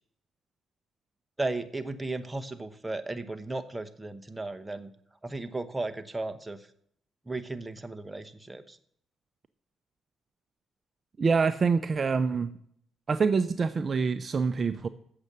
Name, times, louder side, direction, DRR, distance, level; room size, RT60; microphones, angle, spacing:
voice 1, 1.4-4.9 5.2-6.6 7.3-8.8, right 2 dB, 15° right, 9 dB, 0.9 m, -35 dB
voice 2, 11.2-12.5 13.1-14.9, right 5 dB, 40° right, 11 dB, 0.5 m, -26 dB
8.1 x 6.7 x 7.4 m, 0.65 s
cardioid pair, 90°, 0 cm